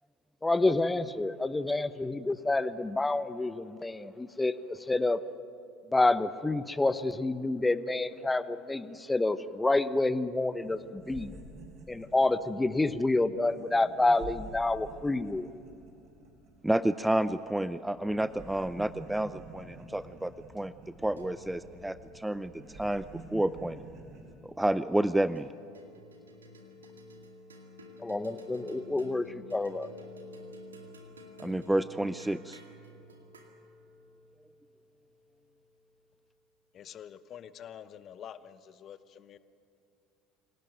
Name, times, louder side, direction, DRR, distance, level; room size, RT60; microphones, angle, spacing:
voice 1, 0.4-5.2 5.9-11.3 11.9-15.5 28.0-29.9, left 2 dB, 15° left, 14 dB, 1.0 m, -28 dB
sound 1, 10.3-10.4 10.6-17.6 17.9-24.3, right 2 dB, 50° right, 5.7 m, -49 dB
voice 2, 16.6-20.7 21.0-23.1 23.3-23.8 24.4-25.5 31.4-32.6, right 1 dB, 5° right, 14 dB, 0.6 m, -30 dB
sound 2, 19.5-24.2 25.4-35.8, left 1 dB, 85° right, 2.2 m, -52 dB
voice 3, 36.7-39.4, left 9 dB, 45° left, 14 dB, 1.0 m, -47 dB
26.0 x 18.0 x 9.3 m, 2.6 s
figure-of-eight pair, 70°, 0 cm